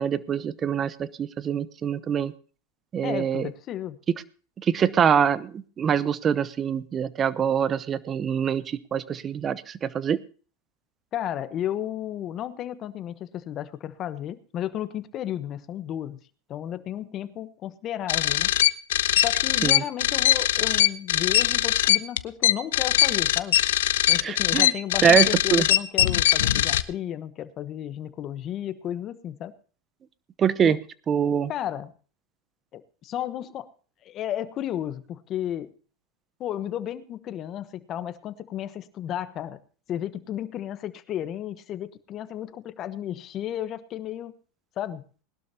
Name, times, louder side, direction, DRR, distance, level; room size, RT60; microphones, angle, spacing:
voice 1, 0.0-2.3 2.9-3.5 4.6-10.2 19.6-19.8 24.2-24.7 25.0-25.7 30.4-30.8 31.1-31.5, right 8 dB, 30° right, 17 dB, 0.9 m, -24 dB
voice 2, 3.0-4.0 11.1-16.2 16.5-18.5 19.2-23.6 24.1-29.5 30.6-30.8 31.5-31.9 32.7-33.7 34.0-35.7 36.4-39.6 39.9-44.3 44.8-45.0, left 11 dB, 40° left, 12 dB, 1.1 m, -33 dB
sound 1, 18.1-26.8, left 13 dB, 75° left, 0.7 m, -21 dB
20.5 x 12.0 x 2.9 m, 0.40 s
hypercardioid pair, 105°, 0 cm